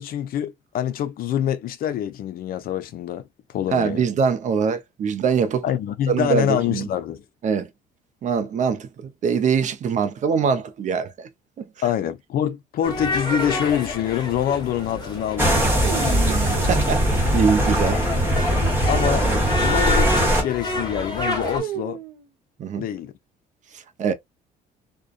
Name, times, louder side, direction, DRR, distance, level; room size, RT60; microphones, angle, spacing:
voice 1, 0.0-3.2 3.5-4.0 5.6-7.2 11.8-15.6 18.9-19.3 19.6-22.0 22.8-23.1, left 10 dB, 60° left, 0.6 m, -25 dB
voice 2, 3.7-5.6 6.1-6.9 7.4-7.7 8.2-11.3 11.6-11.7 16.3-18.0 19.2-19.4 22.6-22.8 23.7-24.1, right 6 dB, 45° right, 0.6 m, -23 dB
sound 1, 12.8-21.6, left 3 dB, 25° left, 1.2 m, -29 dB
sound 2, 15.4-20.4, right 1 dB, 15° right, 1.2 m, -20 dB
sound 3, 15.6-18.1 21.2-22.2, right 8 dB, 65° right, 0.9 m, -34 dB
2.5 x 2.2 x 2.3 m
cardioid pair, 110°, 17 cm